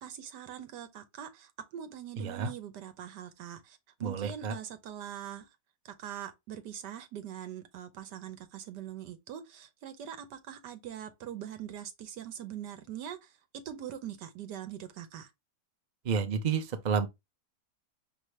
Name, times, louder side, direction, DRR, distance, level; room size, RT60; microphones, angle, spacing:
voice 1, 0.0-5.5 5.8-15.3, right 10 dB, 90° right, 1.5 m, -43 dB
voice 2, 2.2-2.5 4.0-4.5 16.1-17.1, right 6 dB, 45° right, 0.5 m, -30 dB
5.1 x 3.0 x 3.1 m
omnidirectional pair, 1.8 m